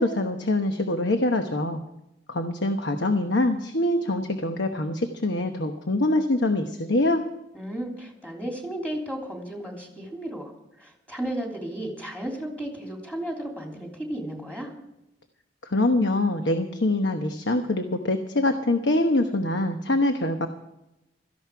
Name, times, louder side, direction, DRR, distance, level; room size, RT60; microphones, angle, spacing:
voice 1, 0.0-1.8 2.3-7.2 15.6-20.5, left 1 dB, 65° left, 6 dB, 1.1 m, -24 dB
voice 2, 7.5-10.5 10.8-14.7, right 1 dB, 5° left, 0 dB, 3.1 m, -34 dB
17.0 x 14.0 x 4.7 m, 0.91 s
head